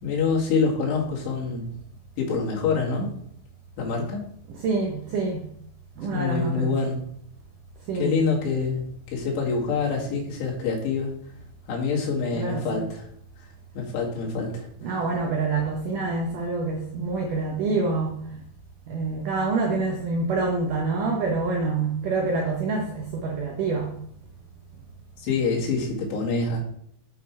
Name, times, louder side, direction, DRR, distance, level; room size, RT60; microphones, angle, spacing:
voice 1, 0.0-1.7 2.2-3.1 3.8-4.2 6.1-7.0 7.9-8.8 9.1-11.2 11.7-13.1 13.4-13.5 13.7-14.7 25.2-26.6, left 4 dB, 75° left, -2 dB, 4.1 m, -26 dB
voice 2, 4.5-5.5 6.0-6.8 7.9-8.2 12.3-12.9 14.8-18.2 18.9-23.9, right 3 dB, 75° right, 1 dB, 1.9 m, -26 dB
9.1 x 5.8 x 4.6 m, 0.68 s
omnidirectional pair, 5.0 m